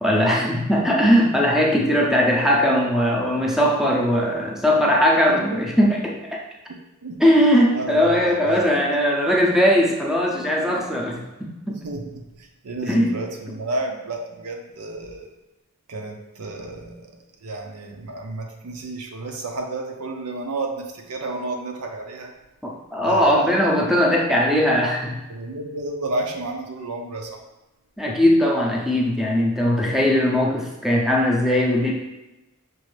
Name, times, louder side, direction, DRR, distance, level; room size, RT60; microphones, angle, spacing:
voice 1, 0.0-6.2 7.2-11.8 12.8-13.2 22.6-25.2 28.0-31.9, equal, ahead, -2 dB, 0.5 m, -19 dB
voice 2, 5.3-5.6 7.0-7.2 7.7-8.7 11.7-15.3 15.9-17.2 17.4-22.3 23.0-23.6 24.7-24.8 25.3-27.4, right 2 dB, 85° right, 3 dB, 0.6 m, -31 dB
6.1 x 2.5 x 3.2 m, 1.0 s
head